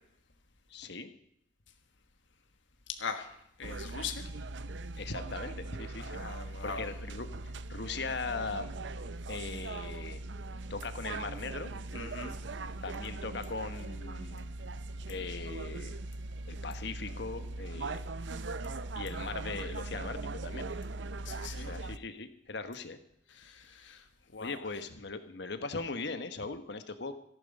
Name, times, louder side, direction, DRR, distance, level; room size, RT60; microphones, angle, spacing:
voice 1, 0.7-1.1 5.0-6.1 6.5-7.3 7.7-8.8 9.3-10.2 10.7-11.7 12.8-14.5 15.1-16.0 16.5-18.0 18.9-20.6 21.6-23.0 24.4-27.1, left 4 dB, 65° left, 10 dB, 1.2 m, -39 dB
voice 2, 2.9-3.3 3.6-4.3 6.0-6.8 11.9-12.3 21.2-21.8 23.3-24.0 24.3-24.6, left 5 dB, 80° left, 6 dB, 1.5 m, -40 dB
sound 1, 3.6-22.0, right 2 dB, 70° right, 0.6 m, -40 dB
14.5 x 11.0 x 5.4 m, 0.76 s
head